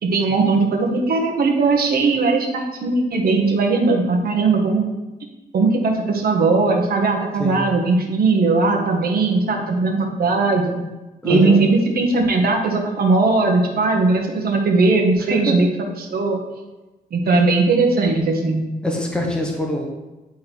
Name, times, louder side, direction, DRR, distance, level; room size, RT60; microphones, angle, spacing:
voice 1, 0.0-4.8 5.5-10.8 11.2-15.7 16.0-16.4 17.1-18.6, right 3 dB, 65° right, 2 dB, 1.4 m, -18 dB
voice 2, 11.2-11.6 15.3-15.7 17.3-17.6 18.8-19.9, equal, 5° left, 0 dB, 1.1 m, -24 dB
10.0 x 3.7 x 4.6 m, 1.1 s
cardioid pair, 120°, 17 cm